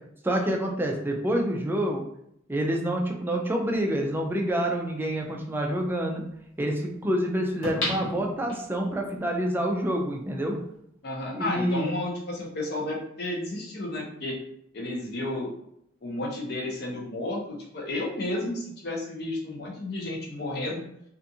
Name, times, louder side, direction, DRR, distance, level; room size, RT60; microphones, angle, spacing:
voice 1, 0.2-2.0 2.5-6.2 6.6-10.6 11.3-11.9, right 1 dB, 10° right, 0 dB, 0.3 m, -27 dB
sound 1, 4.0-4.1 7.6-8.9 9.4-9.5, left 1 dB, 70° left, 1.1 m, -32 dB
voice 2, 11.0-14.4 14.7-15.5 16.0-20.8, left 1 dB, 55° left, -2 dB, 0.7 m, -32 dB
2.5 x 2.4 x 2.7 m, 0.74 s
head